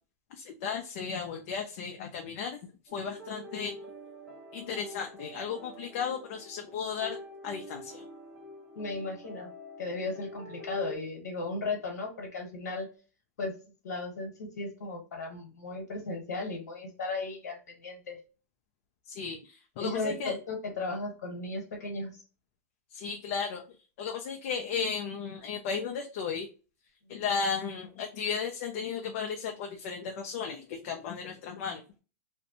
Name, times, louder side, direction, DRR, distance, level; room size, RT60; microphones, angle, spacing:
voice 1, 0.4-2.6 2.9-3.8 4.5-7.2 7.4-8.0 19.1-20.3 22.9-23.6 24.0-26.5 27.1-31.8, left 6 dB, 50° left, 3 dB, 0.4 m, -35 dB
sound 1, 2.9-11.0, left 1 dB, 10° right, 0.9 m, -46 dB
voice 2, 8.7-9.5 9.8-12.9 13.4-13.5 13.8-18.2 19.8-22.1, left 3 dB, 85° left, 0 dB, 1.0 m, -35 dB
2.5 x 2.1 x 2.7 m, 0.35 s
hypercardioid pair, 140°, 9 cm